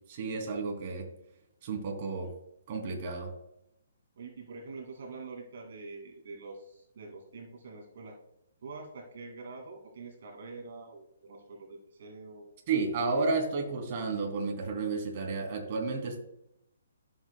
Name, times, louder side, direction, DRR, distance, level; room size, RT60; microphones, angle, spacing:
voice 1, 0.1-1.1 1.6-2.3 2.7-3.3 12.7-16.2, right 4 dB, 40° right, 1 dB, 2.6 m, -32 dB
voice 2, 4.2-8.2 8.6-12.5, right 3 dB, 60° right, 1 dB, 2.3 m, -45 dB
13.0 x 7.7 x 2.3 m, 0.80 s
hypercardioid pair, 155°, 0 cm